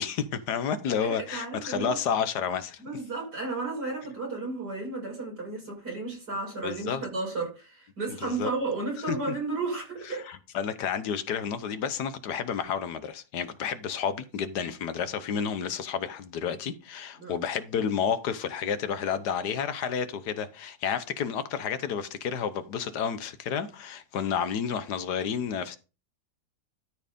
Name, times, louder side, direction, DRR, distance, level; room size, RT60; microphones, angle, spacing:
voice 1, 0.0-2.8 6.6-7.0 8.2-8.5 9.1-9.2 10.1-25.8, left 7 dB, 75° left, 1.4 m, -30 dB
voice 2, 1.0-2.0 2.8-10.3 17.2-17.4, right 3 dB, 75° right, 6.7 m, -33 dB
12.5 x 4.5 x 5.2 m
omnidirectional pair, 1.8 m